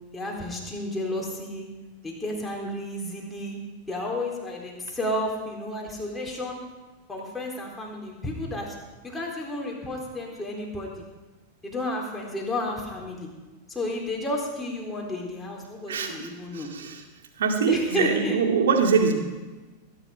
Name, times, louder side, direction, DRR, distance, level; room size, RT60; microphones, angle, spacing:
voice 1, 0.1-1.7 2.0-3.6 3.9-6.6 7.1-8.8 9.0-11.1 11.6-13.3 13.7-16.7 17.7-18.4, left 1 dB, 10° left, -2 dB, 4.0 m, -32 dB
voice 2, 15.9-17.0 17.4-19.1, right 5 dB, 60° right, 3 dB, 2.2 m, -23 dB
20.0 x 10.5 x 5.0 m, 1.2 s
figure-of-eight pair, 90°, 0 cm